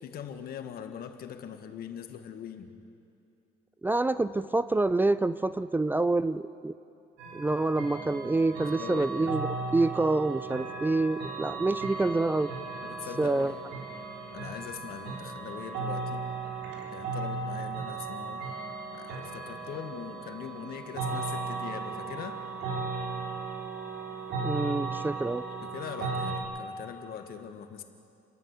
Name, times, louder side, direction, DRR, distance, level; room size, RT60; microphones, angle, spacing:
voice 1, 0.0-2.8 8.6-9.3 12.8-13.7 14.3-16.3 16.9-18.4 18.9-22.4 25.6-27.8, left 8 dB, 65° left, 7 dB, 1.6 m, -41 dB
voice 2, 3.8-6.7 7.3-9.5 9.7-12.5 13.2-13.5 24.4-25.4, right 2 dB, 10° right, 15 dB, 0.4 m, -27 dB
sound 1, 7.2-26.4, right 4 dB, 85° right, 3.6 m, -36 dB
29.5 x 11.0 x 8.3 m, 2.6 s
cardioid pair, 110°, 17 cm